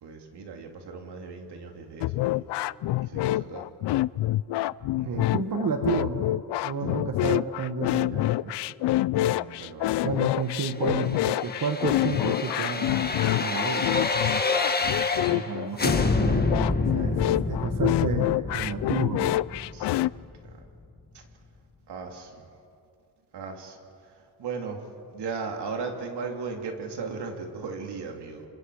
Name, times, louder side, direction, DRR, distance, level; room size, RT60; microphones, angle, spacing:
voice 1, 0.0-2.5 3.1-3.6 5.0-5.3 9.1-10.1 14.6-15.4 19.7-20.0 21.9-22.4 23.3-23.8 24.4-24.8 25.1-28.4, right 5 dB, 75° right, 3 dB, 3.1 m, -37 dB
sound 1, 2.0-20.1, left 16 dB, 80° left, 0.5 m, -27 dB
voice 2, 5.1-6.3 6.6-8.5 10.0-13.9 15.3-17.2 17.5-19.4, right 5 dB, 50° right, 4 dB, 1.8 m, -31 dB
sound 2, 10.8-15.5 15.8-20.6 21.0-21.1, left 3 dB, 25° left, 1.8 m, -28 dB
29.5 x 26.0 x 5.0 m, 2.5 s
cardioid pair, 105°, 40 cm